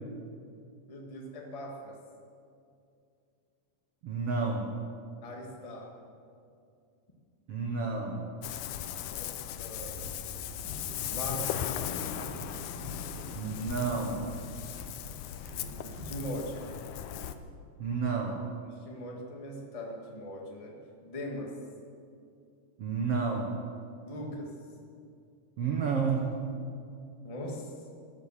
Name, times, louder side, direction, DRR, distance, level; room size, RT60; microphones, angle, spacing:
voice 1, 0.9-1.9 5.2-5.9 9.0-10.0 11.1-11.7 15.5-16.6 18.8-20.8 21.0-21.5 24.0-24.5 27.2-27.9, equal, 60° left, -1 dB, 0.3 m, -40 dB
voice 2, 4.0-4.7 7.5-8.3 13.3-14.2 17.8-18.4 22.8-23.6 25.6-26.4, right 5 dB, 75° right, 1 dB, 1.4 m, -30 dB
Ocean, 8.4-17.3, left 10 dB, 90° left, 1.7 m, -37 dB
sound 1, 9.8-16.2, right 2 dB, 55° right, 3.4 m, -47 dB
12.5 x 12.0 x 7.4 m, 2.4 s
omnidirectional pair, 4.3 m